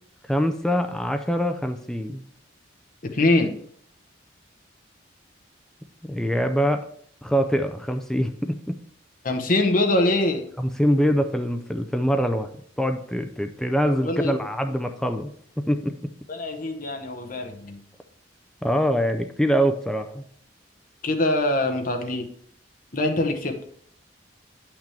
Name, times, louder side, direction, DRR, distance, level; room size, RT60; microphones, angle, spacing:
voice 1, 0.3-2.2 6.0-6.8 7.2-8.8 10.6-12.5 12.8-15.3 15.6-15.9 18.6-20.2, equal, 5° left, 7 dB, 0.4 m, -24 dB
voice 2, 3.1-3.5 9.2-10.4 13.9-14.3 16.3-17.8 21.0-22.3 22.9-23.5, left 2 dB, 45° left, 4 dB, 0.9 m, -23 dB
8.7 x 5.9 x 3.3 m, 0.62 s
head